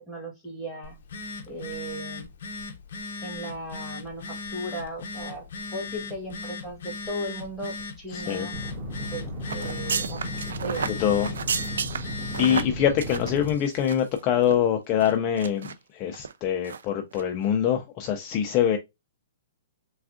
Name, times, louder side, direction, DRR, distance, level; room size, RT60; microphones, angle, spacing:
voice 1, 0.1-1.0 1.5-2.3 3.2-8.5 9.1-10.2 10.6-10.9, right 1 dB, ahead, 1.2 m, -36 dB
Telephone, 0.8-12.8, left 3 dB, 65° left, 0.7 m, -38 dB
voice 2, 8.1-8.5 11.0-11.3 11.6-11.8 12.4-18.8, left 9 dB, 30° left, 0.4 m, -24 dB
sound 1, 8.5-13.5, left 1 dB, 40° right, 1.2 m, -35 dB
sound 2, 9.5-14.2 14.4-14.6 15.0-15.7 16.1-16.3 16.6-16.8 17.1-17.2, right 6 dB, 85° right, 0.3 m, -32 dB
3.4 x 2.3 x 2.4 m
hypercardioid pair, 155°, 0 cm